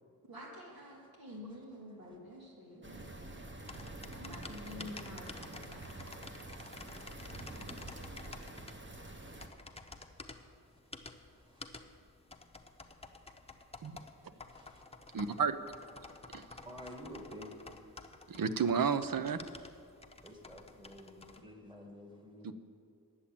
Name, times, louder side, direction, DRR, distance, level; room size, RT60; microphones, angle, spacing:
voice 1, 0.3-3.5 4.1-7.1, left 1 dB, 85° right, -3 dB, 2.5 m, -50 dB
voice 2, 1.0-1.4 2.0-2.5 3.9-4.2 10.1-11.7 14.5-14.8 16.6-17.7 20.2-22.5, equal, 15° right, 1 dB, 2.0 m, -52 dB
sound 1, 2.8-9.5, right 2 dB, 35° right, 1.0 m, -47 dB
sound 2, 3.6-21.4, left 3 dB, 15° left, 0.7 m, -51 dB
voice 3, 15.1-15.6 16.3-16.4 18.3-19.4 22.4-22.6, right 6 dB, 70° right, 11 dB, 0.7 m, -32 dB
10.0 x 7.2 x 8.7 m, 2.3 s
wide cardioid pair, 85°, 35 cm